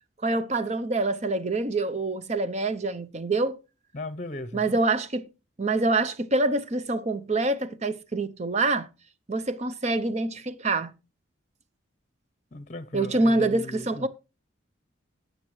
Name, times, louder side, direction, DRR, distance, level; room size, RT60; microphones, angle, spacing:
voice 1, 0.2-3.6 4.5-5.2 5.6-8.9 9.3-10.9 12.9-14.1, right 2 dB, 35° right, 0.7 m, -26 dB
voice 2, 3.9-4.8 12.5-14.1, left 2 dB, 35° left, 0.8 m, -37 dB
19.5 x 6.6 x 3.2 m
head